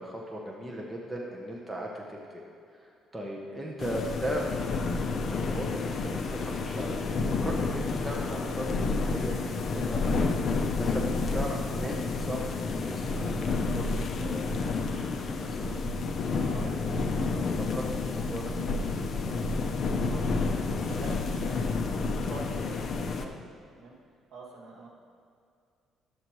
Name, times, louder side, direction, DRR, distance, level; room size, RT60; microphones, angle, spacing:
voice 1, 0.0-2.4 2.8-10.2 10.8-15.8 16.5-18.5, equal, 10° right, -3 dB, 0.8 m, -38 dB
voice 2, 3.1-3.4 16.3-16.7 17.1-17.5 19.2-19.7 20.0-23.3 23.7-23.9 24.3-24.9, right 2 dB, 60° right, -3 dB, 2.1 m, -46 dB
sound 1, 3.8-23.3, left 3 dB, 45° left, 0.6 m, -30 dB
sound 2, 13.7-19.4, equal, 20° left, 1.7 m, -48 dB
11.0 x 8.1 x 3.1 m, 2.3 s
cardioid pair, 135°, 0 cm